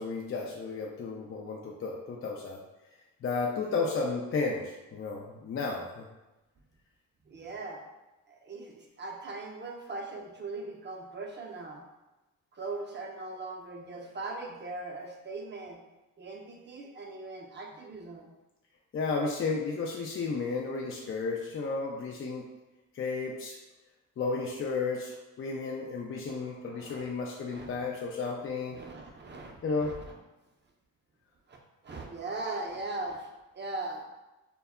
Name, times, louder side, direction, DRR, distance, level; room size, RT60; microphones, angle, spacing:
voice 1, 0.0-2.6 3.2-6.0 18.9-22.5 22.9-23.6 24.2-28.8 29.6-29.9, left 4 dB, 40° left, -1 dB, 0.4 m, -33 dB
voice 2, 7.3-7.8 8.3-11.8 12.5-15.8 16.2-18.3 26.2-27.1 27.5-27.9 28.7-30.2 31.5-31.6 31.8-33.3 33.5-34.0, right 2 dB, 30° right, 0 dB, 0.6 m, -40 dB
2.2 x 2.0 x 3.5 m, 1.0 s
supercardioid pair, 60°, 35 cm